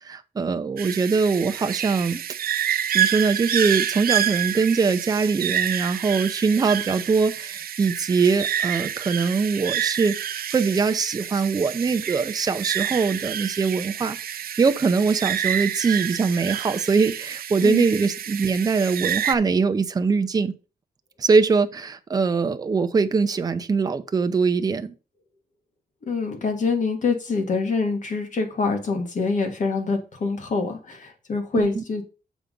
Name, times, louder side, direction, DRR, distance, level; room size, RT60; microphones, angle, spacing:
voice 1, 0.0-2.2 2.9-10.2 10.5-20.5 21.2-24.9 31.5-31.8, right 4 dB, 25° right, 0.5 m, -22 dB
sound 1, 0.8-19.4, right 10 dB, 65° right, 0.7 m, -28 dB
voice 2, 26.1-32.0, left 4 dB, 50° left, 1.9 m, -25 dB
7.2 x 4.8 x 5.2 m
wide cardioid pair, 180°, 16 cm